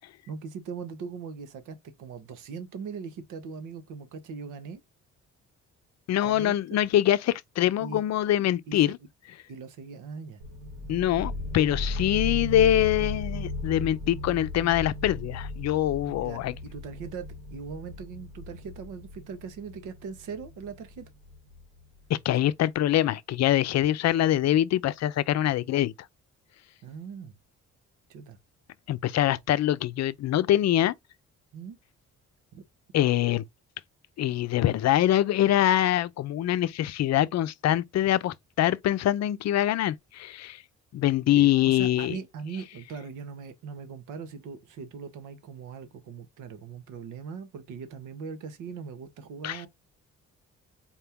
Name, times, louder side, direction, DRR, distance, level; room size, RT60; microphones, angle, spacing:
voice 1, 0.3-4.8 6.2-6.5 7.8-8.0 8.7-8.9 9.5-10.4 16.2-21.1 26.8-27.3 28.1-28.4 31.5-31.8 32.5-32.6 41.3-49.7, right 5 dB, 90° right, 1.1 m, -40 dB
voice 2, 6.1-9.0 10.9-16.5 22.1-25.9 28.9-30.9 32.9-33.4 34.2-40.6 40.9-42.2 49.4-49.6, left 12 dB, 60° left, 0.5 m, -24 dB
sound 1, 10.4-21.8, left 2 dB, 65° right, 1.8 m, -36 dB
4.3 x 2.9 x 3.5 m
cardioid pair, 90°, 30 cm